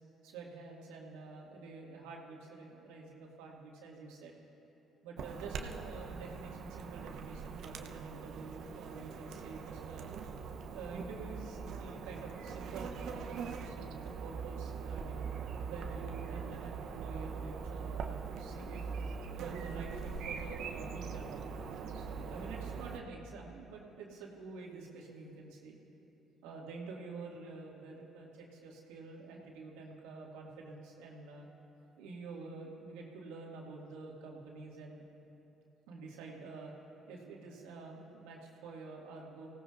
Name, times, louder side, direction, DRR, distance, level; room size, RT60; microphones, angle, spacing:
voice 1, 0.2-4.3 5.0-10.1 10.7-15.2 15.6-18.9 19.3-21.4 21.7-25.8 26.4-31.5 32.0-35.1 35.9-36.7 37.1-39.5, right 3 dB, 85° right, -2 dB, 2.0 m, -48 dB
Chirp tweet / Buzz, 5.2-23.0, right 6 dB, 70° right, 0.8 m, -42 dB
25.0 x 17.0 x 2.6 m, 2.9 s
supercardioid pair, 60°, 0 cm